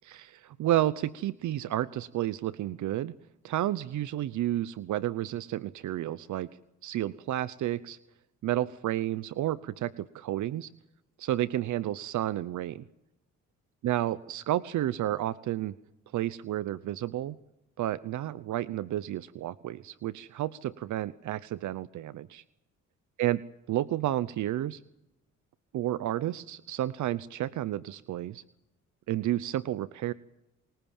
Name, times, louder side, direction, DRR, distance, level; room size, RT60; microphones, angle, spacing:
voice 1, 0.0-3.1 3.4-6.5 6.8-8.0 8.4-10.7 11.2-12.8 13.8-15.7 16.1-17.4 17.8-22.4 23.2-23.4 23.7-24.8 25.7-28.4 29.1-30.1, right 13 dB, 75° right, 17 dB, 0.9 m, -31 dB
28.0 x 21.5 x 7.3 m, 0.89 s
cardioid pair, 90°, 30 cm